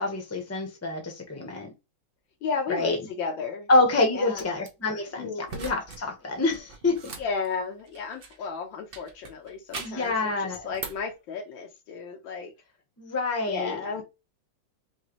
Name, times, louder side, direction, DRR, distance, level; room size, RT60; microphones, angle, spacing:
voice 1, 0.0-1.7 2.7-3.0 3.7-7.0 9.7-10.7 13.0-14.0, left 2 dB, 10° left, 0.7 m, -27 dB
voice 2, 2.4-3.7 4.1-4.5 5.2-5.5 7.2-12.5 13.5-14.0, left 5 dB, 80° left, 1.7 m, -33 dB
sound 1, 4.3-4.7 5.5-6.0 6.3-8.5 8.9-10.1 10.5-11.1, right 4 dB, 50° right, 0.6 m, -41 dB
5.6 x 2.3 x 3.0 m
omnidirectional pair, 2.1 m